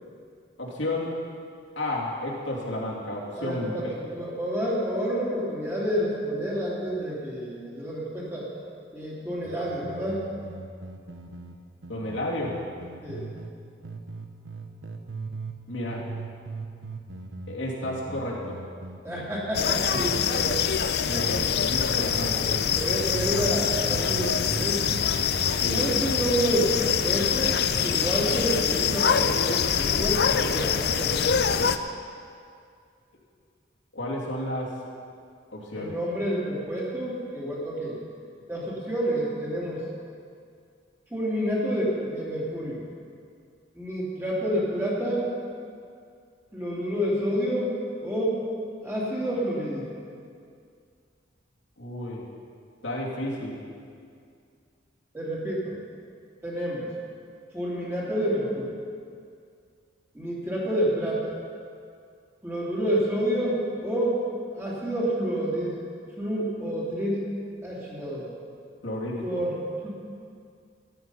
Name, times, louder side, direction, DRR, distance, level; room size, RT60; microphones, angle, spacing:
voice 1, 0.6-1.2 1.8-3.9 11.9-12.6 15.7-16.1 17.5-18.6 20.4-20.5 21.0-22.5 25.5-25.9 33.9-34.7 35.5-36.0 51.8-52.3 52.8-53.6 68.8-69.3, left 1 dB, 75° left, -5 dB, 2.8 m, -31 dB
voice 2, 3.4-8.5 8.9-10.2 13.0-13.3 19.0-20.6 21.1-21.5 22.3-24.9 25.7-27.6 27.8-31.2 35.7-38.0 38.5-39.8 41.1-42.9 43.7-45.3 46.5-47.7 48.0-48.4 48.8-50.0 55.1-55.8 56.4-56.9 57.5-58.8 60.1-61.3 62.4-64.2 64.5-65.8 66.2-67.3 67.6-68.3 69.2-69.9, equal, 15° right, -6 dB, 2.8 m, -29 dB
sound 1, 9.4-13.5 13.8-15.6 15.8-21.5 21.8-23.6 23.8-26.7, right 3 dB, 85° right, 1.0 m, -39 dB
sound 2, 19.5-31.8, left 7 dB, 55° left, 0.5 m, -25 dB
14.0 x 11.0 x 5.6 m, 2.3 s
head